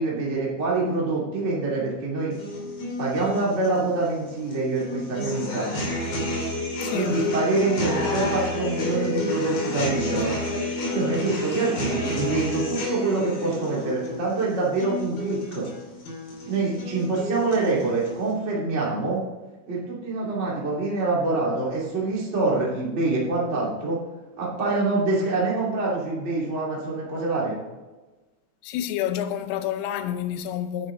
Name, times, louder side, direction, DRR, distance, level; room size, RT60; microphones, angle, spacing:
voice 1, 0.0-2.3 3.0-5.7 6.9-10.3 10.9-15.7 16.4-19.2 19.7-24.0 24.4-27.5, right 3 dB, 25° right, 1.5 m, -25 dB
sound 1, 2.3-18.3, left 1 dB, 50° left, 4.2 m, -30 dB
voice 2, 6.8-7.2 28.6-30.9, left 10 dB, 85° left, 3.3 m, -29 dB
9.8 x 9.7 x 3.8 m
omnidirectional pair, 5.8 m